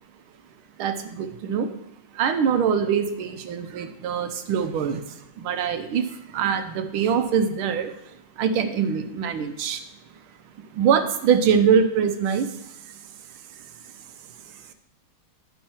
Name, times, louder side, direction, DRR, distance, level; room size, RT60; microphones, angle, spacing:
voice 1, 0.8-1.7 2.2-5.0 5.4-6.0 6.3-7.9 8.4-9.8 10.8-12.5, right 7 dB, 80° right, 8 dB, 1.6 m, -23 dB
11.0 x 10.0 x 2.9 m, 0.80 s
omnidirectional pair, 2.3 m